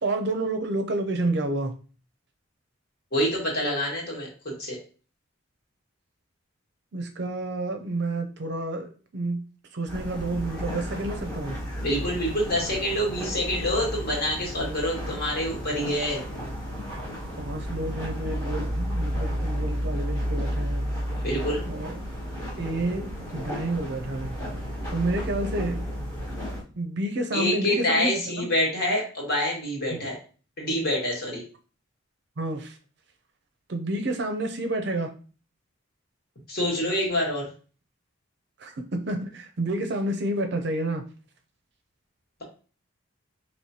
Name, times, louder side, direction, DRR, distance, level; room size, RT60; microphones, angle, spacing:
voice 1, 0.0-1.7 6.9-9.4 9.7-11.6 17.4-20.9 21.6-22.0 22.6-24.4 24.9-25.8 26.8-28.1 29.9-30.0 32.4-32.8 33.7-35.1 38.6-41.0, right 2 dB, 55° right, 6 dB, 0.5 m, -29 dB
voice 2, 3.1-4.8 11.8-16.2 21.2-21.6 27.3-30.2 30.6-31.4 36.5-37.5, left 1 dB, 45° left, -2 dB, 1.5 m, -26 dB
sound 1, 9.9-26.6, equal, 20° left, 1.3 m, -32 dB
4.8 x 3.0 x 2.8 m, 0.38 s
head